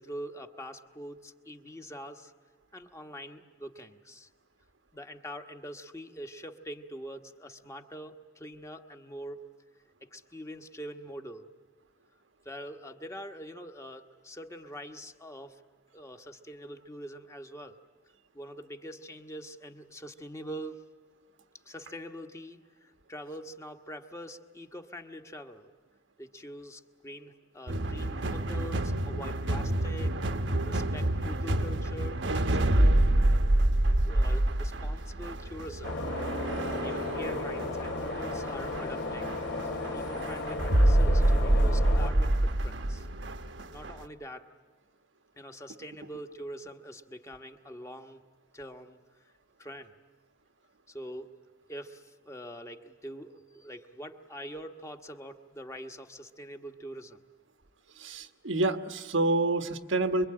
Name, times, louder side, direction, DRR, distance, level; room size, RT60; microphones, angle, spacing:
voice 1, 0.0-2.3 2.7-4.3 4.9-9.4 10.0-11.5 12.4-15.6 15.9-17.8 18.3-20.8 21.6-25.7 26.2-30.4 30.6-33.0 34.0-35.9 36.5-39.3 39.9-43.1 43.7-44.5 45.4-48.2 48.5-49.0 49.6-49.9 50.9-51.3 51.7-57.2, equal, 15° left, 5 dB, 1.2 m, -44 dB
sound 1, 27.7-44.0, right 1 dB, 70° right, 1.1 m, -27 dB
sound 2, 35.8-42.1, left 2 dB, 70° left, 3.6 m, -35 dB
voice 2, 58.0-60.3, right 2 dB, 90° right, 7 dB, 1.4 m, -28 dB
26.0 x 23.5 x 8.8 m, 1.5 s
head